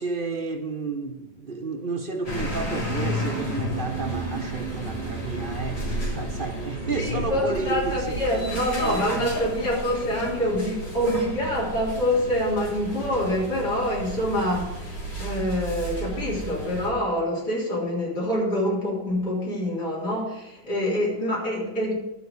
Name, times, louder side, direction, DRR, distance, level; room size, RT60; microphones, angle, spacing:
voice 1, 0.0-8.2 8.8-9.2, right 4 dB, 40° right, 0.9 m, -31 dB
sound 1, 2.2-16.9, equal, 90° left, 4.3 m, -33 dB
sound 2, 2.9-8.7, right 7 dB, 80° right, 0.4 m, -36 dB
voice 2, 7.0-21.9, left 1 dB, 70° left, 4.4 m, -26 dB
12.0 x 5.2 x 8.3 m
omnidirectional pair, 1.8 m